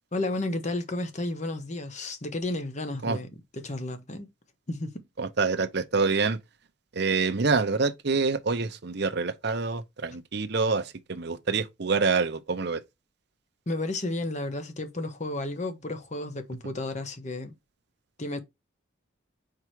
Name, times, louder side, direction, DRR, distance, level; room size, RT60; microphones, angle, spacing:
voice 1, 0.1-3.3 3.5-4.3 4.7-5.0 13.7-17.5 18.2-18.4, left 2 dB, 35° left, 1.1 m, -32 dB
voice 2, 5.2-6.4 6.9-12.8, right 4 dB, 55° right, 0.7 m, -26 dB
4.7 x 4.7 x 4.5 m
head